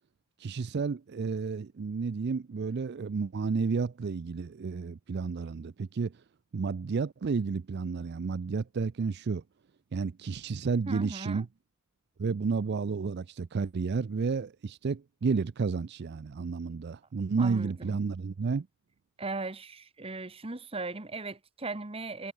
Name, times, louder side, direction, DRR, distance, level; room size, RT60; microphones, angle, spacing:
voice 1, 0.4-6.1 6.5-9.4 9.9-11.5 12.2-18.7, right 5 dB, 55° right, 0.4 m, -31 dB
voice 2, 10.8-11.4 17.4-18.0 19.2-22.3, right 3 dB, 30° right, 1.3 m, -38 dB
head